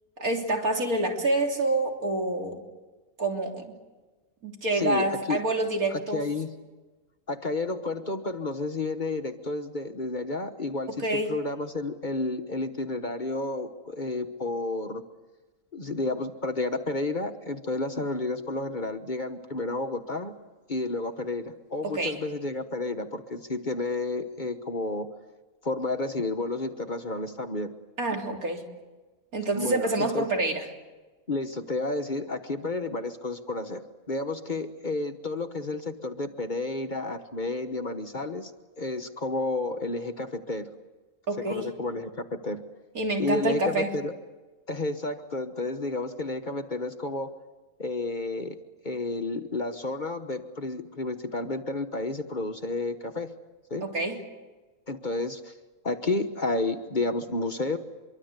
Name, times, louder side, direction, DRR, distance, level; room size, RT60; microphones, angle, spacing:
voice 1, 0.2-2.6 3.2-3.7 4.4-6.2 11.0-11.3 21.8-22.2 28.0-28.6 29.3-30.7 41.3-41.7 43.0-43.9 53.8-54.2, right 2 dB, 85° right, 2 dB, 3.8 m, -27 dB
voice 2, 4.7-5.4 5.9-6.5 7.3-15.0 15.7-20.3 20.7-25.1 25.6-27.7 29.5-30.2 31.3-33.8 34.1-38.5 38.8-40.7 41.5-42.6 43.2-44.1 44.7-47.3 47.8-48.6 48.8-53.3 53.7-53.8 54.9-55.5 55.8-57.8, left 2 dB, 35° left, 8 dB, 1.3 m, -31 dB
25.5 x 23.5 x 8.1 m, 1.2 s
omnidirectional pair, 1.5 m